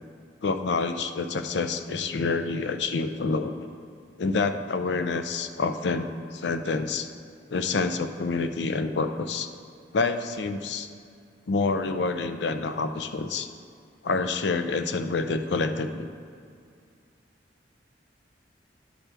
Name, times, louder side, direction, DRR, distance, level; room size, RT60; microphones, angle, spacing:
voice 1, 0.4-3.7 4.2-7.1 7.5-9.5 9.9-10.9 11.5-13.5 14.0-16.1, left 4 dB, 75° left, 8 dB, 0.5 m, -27 dB
10.5 x 5.9 x 3.4 m, 2.4 s
head